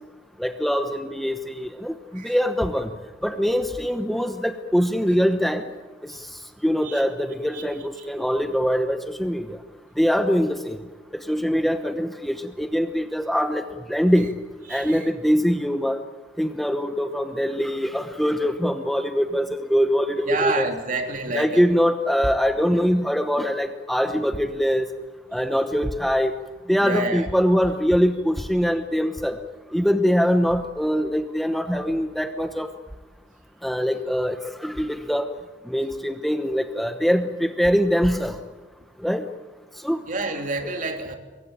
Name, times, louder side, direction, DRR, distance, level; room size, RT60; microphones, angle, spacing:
voice 1, 0.4-2.9 3.2-5.7 6.0-6.2 6.6-9.6 10.0-10.8 11.1-14.3 14.7-16.0 16.4-20.7 21.3-24.9 25.3-26.3 26.7-29.4 29.7-32.7 33.6-35.3 35.7-38.4 39.0-39.3 39.8-40.0, equal, ahead, 7 dB, 1.0 m, -23 dB
voice 2, 14.7-15.1 20.3-21.6 26.8-27.3 40.1-41.2, right 3 dB, 50° right, 4 dB, 3.2 m, -28 dB
24.5 x 22.5 x 9.0 m, 1.3 s
head